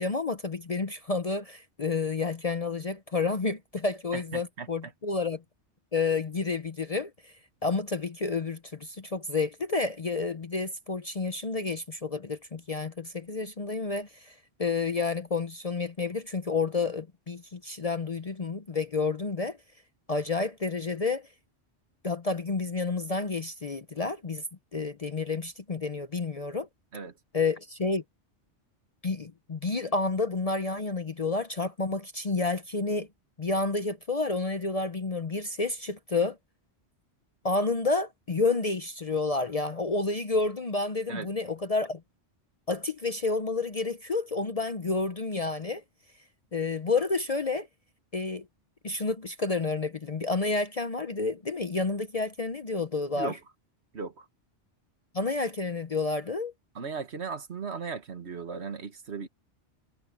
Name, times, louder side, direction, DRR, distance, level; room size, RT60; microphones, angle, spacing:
voice 1, 0.0-5.4 5.9-19.6 20.1-21.3 22.0-24.4 24.7-26.7 27.3-28.0 29.0-33.1 33.4-36.4 37.4-42.0 42.7-45.8 46.5-47.7 48.1-48.5 48.8-53.4 55.1-56.5, left 3 dB, 35° left, 0.7 m, -30 dB
voice 2, 4.1-4.7 26.9-27.1 41.1-41.3 53.1-53.4 53.9-54.2 56.7-59.3, right 5 dB, 65° right, 1.7 m, -37 dB
omnidirectional pair, 1.2 m